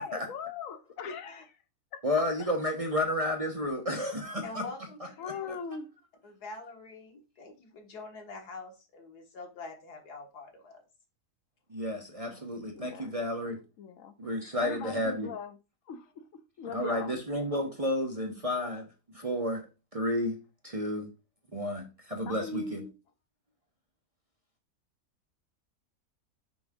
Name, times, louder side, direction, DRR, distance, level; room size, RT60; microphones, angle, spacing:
voice 1, 0.0-1.4 1.9-2.2 5.2-5.9 12.3-12.5 12.7-13.1 13.8-14.1 14.6-15.5 15.9-16.3 16.6-17.2 22.2-22.9, left 6 dB, 65° left, 1.1 m, -40 dB
voice 2, 1.0-1.4 4.4-5.5 6.2-10.8, left 3 dB, 85° left, 2.0 m, -45 dB
voice 3, 2.0-4.6 11.7-13.6 14.2-15.3 16.6-18.9 19.1-19.7 19.9-20.4 20.6-21.1 21.5-22.8, left 1 dB, 30° right, 0.8 m, -31 dB
6.2 x 4.8 x 3.6 m
omnidirectional pair, 1.6 m